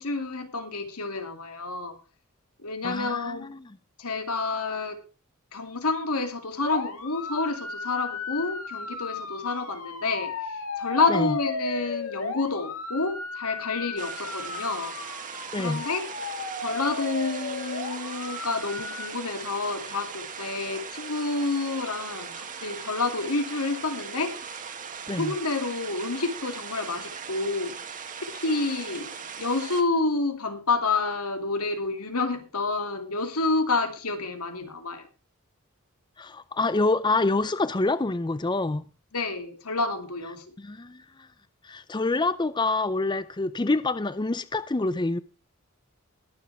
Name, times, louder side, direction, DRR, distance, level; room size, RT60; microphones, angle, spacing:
voice 1, 0.0-2.0 2.6-3.5 4.0-5.0 5.5-14.9 15.6-16.0 16.6-24.6 25.2-27.8 28.2-29.1 29.4-35.1 39.1-40.4, left 3 dB, 90° left, 2.5 m, -29 dB
voice 2, 2.8-3.6 11.1-11.3 15.5-15.8 25.1-25.3 36.2-38.8 40.6-41.0 41.6-45.2, left 2 dB, 20° left, 0.5 m, -26 dB
sound 1, 6.6-19.1, left 4 dB, 65° left, 2.3 m, -35 dB
sound 2, 14.0-29.8, right 6 dB, 35° right, 1.6 m, -39 dB
21.0 x 7.3 x 3.3 m
head